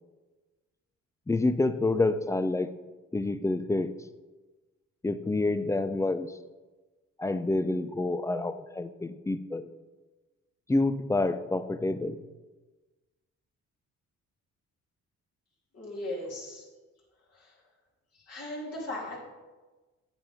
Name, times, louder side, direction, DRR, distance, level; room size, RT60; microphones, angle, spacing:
voice 1, 1.3-2.7 3.1-3.9 5.0-6.3 7.2-9.7 10.7-12.2, left 2 dB, 10° left, 13 dB, 0.3 m, -28 dB
voice 2, 15.7-16.6 17.3-17.6 18.1-19.2, left 1 dB, 55° left, -5 dB, 3.2 m, -38 dB
9.0 x 8.0 x 3.5 m, 1.2 s
cardioid pair, 90°, 30 cm